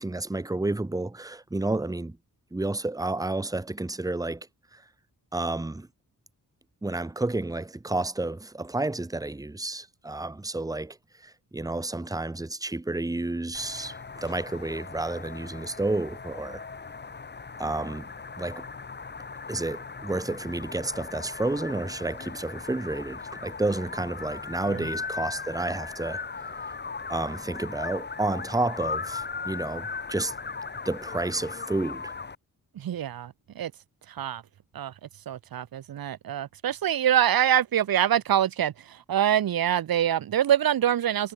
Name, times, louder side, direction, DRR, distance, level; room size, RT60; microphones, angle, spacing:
voice 1, 0.0-2.2 2.5-4.5 4.7-4.8 5.3-5.9 6.8-16.6 17.6-18.1 18.4-18.7 19.5-26.2 26.5-26.8 27.1-30.3 30.9-32.1, right 2 dB, 10° right, 1.7 m, -31 dB
sound 1, 13.5-32.3, left 4 dB, 30° left, 2.6 m, -38 dB
voice 2, 32.7-33.7 34.1-34.4 34.7-34.9 35.2-41.3, right 10 dB, 75° right, 1.6 m, -25 dB
wide cardioid pair, 150°, 36 cm